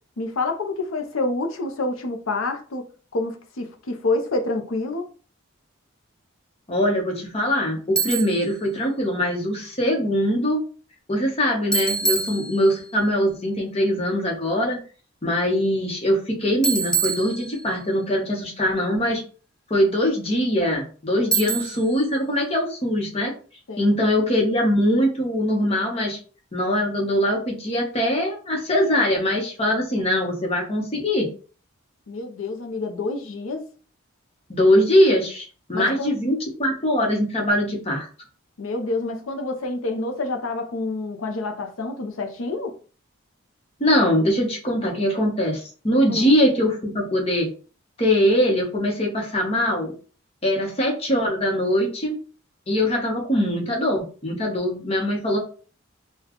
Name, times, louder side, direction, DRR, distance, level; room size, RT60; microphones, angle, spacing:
voice 1, 0.2-2.9 3.1-5.1 21.1-21.4 21.8-21.9 23.7-23.9 32.1-33.6 35.7-36.1 38.6-42.7 46.1-46.3, left 2 dB, 75° left, 0.7 m, -28 dB
voice 2, 6.7-10.6 11.1-14.8 15.2-19.2 19.7-23.3 23.8-26.2 26.5-31.3 34.5-38.1 43.8-47.5 48.0-49.9 50.4-52.2 52.7-55.4, equal, 30° left, 0.9 m, -22 dB
Bicycle, 8.0-8.5 11.7-12.9 16.6-17.9 21.3-22.0, right 4 dB, 5° left, 0.3 m, -25 dB
4.0 x 2.3 x 3.0 m
head